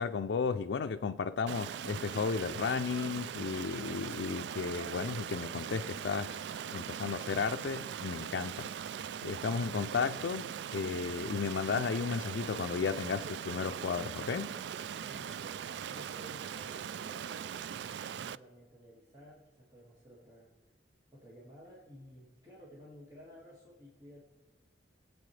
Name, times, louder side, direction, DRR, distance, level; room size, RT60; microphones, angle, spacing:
voice 1, 0.0-14.6, left 5 dB, 85° left, 0.4 m, -34 dB
Stream, 1.5-18.4, right 8 dB, 80° right, 0.3 m, -40 dB
voice 2, 15.0-20.5 21.1-24.2, equal, 20° right, 1.9 m, -54 dB
22.5 x 8.3 x 3.3 m
head